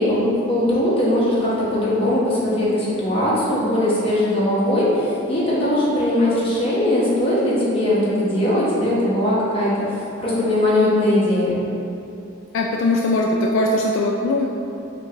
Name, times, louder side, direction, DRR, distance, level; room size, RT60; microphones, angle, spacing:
voice 1, 0.0-9.9 10.2-11.6, left 1 dB, 30° left, -8 dB, 1.1 m, -20 dB
voice 2, 12.5-14.5, left 2 dB, 65° left, -1 dB, 0.3 m, -20 dB
6.4 x 2.5 x 2.9 m, 2.8 s
head